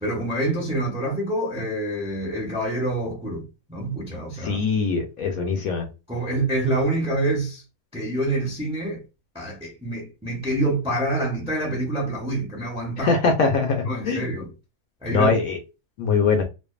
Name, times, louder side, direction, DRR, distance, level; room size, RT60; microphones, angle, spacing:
voice 1, 0.0-4.6 6.1-7.6 7.9-9.0 9.3-13.2 13.9-14.5 15.0-15.3, right 1 dB, 5° right, 0.6 m, -26 dB
voice 2, 4.4-5.9 13.0-14.3 15.1-15.6 16.0-16.4, left 4 dB, 70° left, 1.0 m, -22 dB
2.6 x 2.4 x 2.3 m
omnidirectional pair, 1.7 m